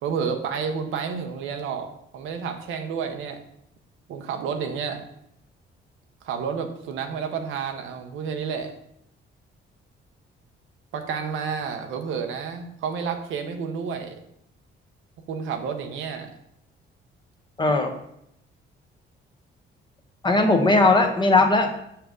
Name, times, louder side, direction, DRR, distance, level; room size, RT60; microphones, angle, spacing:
voice 1, 0.0-1.9 2.1-3.4 4.1-5.0 6.2-8.7 10.9-14.2 15.3-16.3, right 6 dB, 85° right, 5 dB, 0.9 m, -30 dB
voice 2, 17.6-17.9 20.2-21.8, left 2 dB, 25° left, 4 dB, 1.1 m, -18 dB
6.3 x 5.7 x 3.7 m, 0.76 s
cardioid pair, 90°, 20 cm